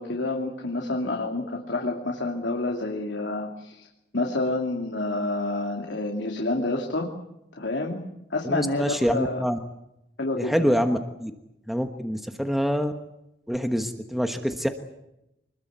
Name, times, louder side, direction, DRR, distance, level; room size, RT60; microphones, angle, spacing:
voice 1, 0.0-3.9 4.1-7.1 7.5-8.0 8.3-9.4 10.2-10.7, left 2 dB, 85° left, 1 dB, 2.7 m, -28 dB
voice 2, 8.4-9.6 10.4-11.3 11.7-12.9 13.5-14.7, equal, ahead, 6 dB, 1.2 m, -25 dB
26.0 x 21.0 x 8.1 m, 0.87 s
head